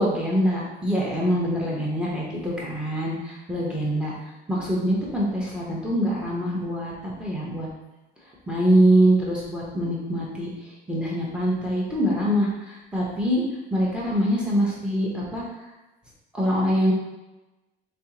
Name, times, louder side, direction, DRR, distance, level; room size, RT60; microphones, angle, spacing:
voice 1, 0.0-4.1 4.5-6.9 7.2-7.7 8.5-10.5 10.9-13.4 13.7-15.4 16.3-16.9, equal, 5° right, -5 dB, 1.1 m, -24 dB
3.4 x 3.3 x 3.0 m, 1.0 s
cardioid pair, 115°, 20 cm